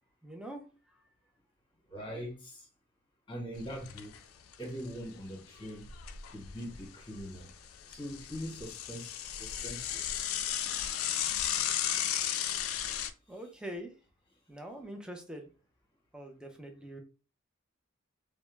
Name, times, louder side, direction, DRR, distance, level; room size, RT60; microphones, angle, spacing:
voice 1, 0.2-1.0 13.3-13.9 14.5-15.5 16.1-17.0, right 1 dB, 5° right, 0.4 m, -44 dB
voice 2, 1.9-2.7 3.3-4.2 4.6-5.9 6.3-7.5 7.9-10.1 12.3-12.4, equal, 25° left, 1.0 m, -42 dB
Bicycle / Mechanisms, 3.6-4.2 4.5-4.6 4.9-5.0 5.6-6.8 7.2-13.1, left 10 dB, 90° left, 0.3 m, -34 dB
2.2 x 2.0 x 3.1 m
head